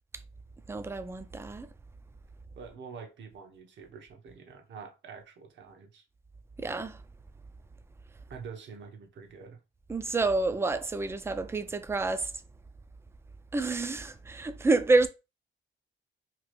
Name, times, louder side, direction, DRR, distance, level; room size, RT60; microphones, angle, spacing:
voice 1, 0.7-1.7 6.6-7.0 9.9-12.3 13.5-15.1, right 3 dB, 15° right, 0.3 m, -28 dB
voice 2, 2.6-6.0 8.3-9.6, right 6 dB, 65° right, 0.9 m, -46 dB
2.9 x 2.5 x 3.1 m
cardioid pair, 90°, 20 cm